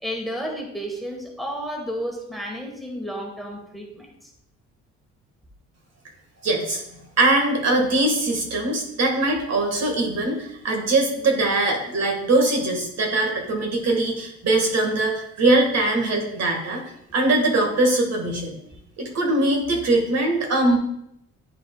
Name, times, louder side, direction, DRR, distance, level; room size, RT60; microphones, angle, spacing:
voice 1, 0.0-4.3, equal, ahead, 0 dB, 1.5 m, -32 dB
voice 2, 6.4-16.8 17.1-18.6 19.0-20.8, right 2 dB, 60° right, 1 dB, 1.8 m, -22 dB
10.5 x 5.2 x 2.4 m, 0.78 s
cardioid pair, 90°, 30 cm